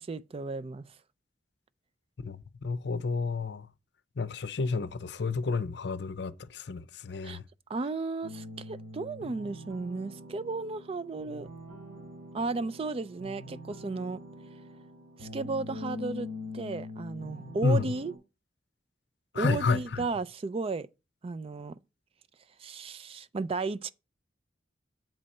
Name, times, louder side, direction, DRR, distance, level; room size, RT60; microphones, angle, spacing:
voice 1, 0.1-0.8 7.2-7.4 7.7-11.5 12.3-14.2 15.2-16.3 16.5-18.1 19.3-20.9 21.2-21.8 22.6-23.9, right 3 dB, 30° right, 0.4 m, -34 dB
voice 2, 2.2-3.7 4.2-7.4 17.6-17.9 19.3-20.0, left 4 dB, 65° left, 0.6 m, -30 dB
sound 1, 8.2-18.2, left 2 dB, 75° right, 3.8 m, -44 dB
7.8 x 4.2 x 6.3 m
head